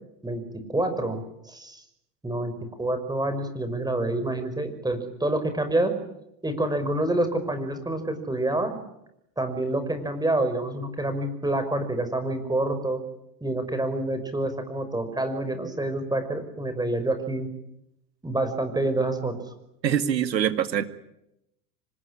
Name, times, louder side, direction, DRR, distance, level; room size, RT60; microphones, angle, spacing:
voice 1, 0.7-1.8 2.2-2.5 2.8-5.9 6.4-8.8 9.4-13.0 13.4-17.5 18.2-19.3, right 1 dB, 10° right, 9 dB, 5.7 m, -27 dB
voice 2, 19.8-20.8, right 9 dB, 85° right, 10 dB, 2.3 m, -24 dB
26.5 x 20.0 x 9.9 m, 0.82 s
hypercardioid pair, 95°, 49 cm